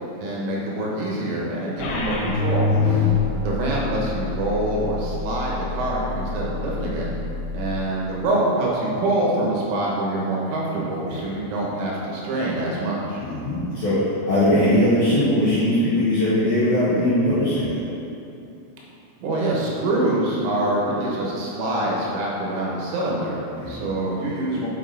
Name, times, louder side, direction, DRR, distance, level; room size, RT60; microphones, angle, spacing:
voice 1, 0.2-3.0 3.4-7.1 7.5-13.2 19.2-24.7, right 1 dB, 75° right, -4 dB, 3.6 m, -25 dB
sound 1, 1.8-7.8, left 4 dB, 80° left, 3.0 m, -26 dB
voice 2, 2.7-3.1 11.1-11.2 13.2-17.7 23.6-23.7, left 1 dB, 60° left, -14 dB, 2.2 m, -20 dB
8.2 x 6.1 x 3.9 m, 2.9 s
omnidirectional pair, 5.9 m